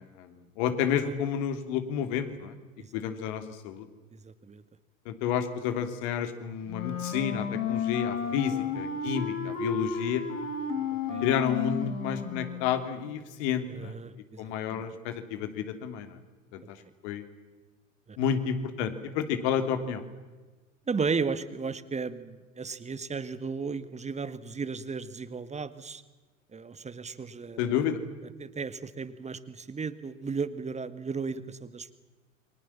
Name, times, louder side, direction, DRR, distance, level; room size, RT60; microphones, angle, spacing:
voice 1, 0.0-2.5 2.9-3.9 5.0-10.2 11.2-13.9 14.4-16.2 16.5-16.8 17.0-17.2 18.2-20.0 27.6-28.0, left 8 dB, 55° left, 8 dB, 3.2 m, -30 dB
voice 2, 4.2-4.6 8.2-8.7 11.1-11.3 13.7-14.4 14.7-14.8 18.1-18.2 20.9-26.0 26.5-27.8 28.4-31.9, right 5 dB, 15° right, 13 dB, 1.8 m, -35 dB
Wind instrument woodwind instrument, 6.7-12.9, left 6 dB, 70° left, 4.7 m, -32 dB
29.0 x 24.5 x 7.3 m, 1.3 s
figure-of-eight pair, 75°, 40 cm